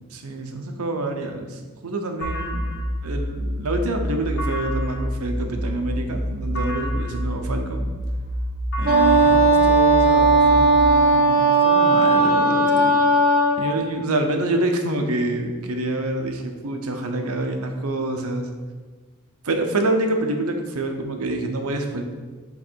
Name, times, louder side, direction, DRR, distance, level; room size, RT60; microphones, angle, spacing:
voice 1, 0.1-2.7 3.0-7.9 8.8-13.2 13.6-18.5 19.4-22.0, right 2 dB, 80° right, 4 dB, 0.8 m, -27 dB
sound 1, 2.2-10.9, equal, 60° left, 1.4 m, -27 dB
Wind instrument woodwind instrument, 8.8-13.7, right 2 dB, 45° right, 1.0 m, -16 dB
7.5 x 3.2 x 4.5 m, 1.3 s
head